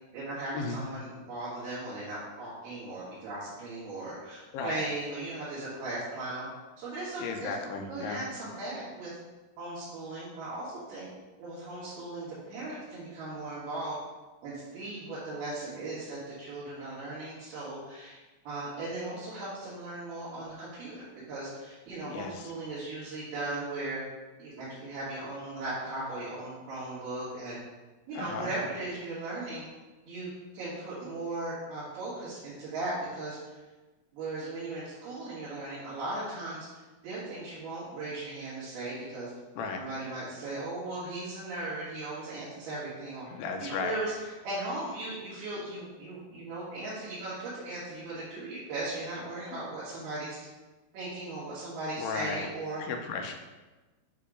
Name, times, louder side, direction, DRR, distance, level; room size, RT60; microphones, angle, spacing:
voice 1, 0.1-6.5 6.8-9.1 9.6-11.1 11.4-14.0 14.4-18.2 18.5-24.0 24.4-27.6 28.1-29.7 30.1-33.6 34.1-36.7 37.0-39.3 39.8-43.3 43.6-50.4 50.9-52.8, right 2 dB, 75° right, -10 dB, 3.5 m, -37 dB
voice 2, 7.2-8.2 22.1-22.5 28.1-28.5 39.6-39.8 43.3-44.0 49.5-49.6 52.0-52.5 52.8-53.4, left 5 dB, 85° left, 4 dB, 2.8 m, -35 dB
7.6 x 2.9 x 4.9 m, 1.2 s
omnidirectional pair, 4.6 m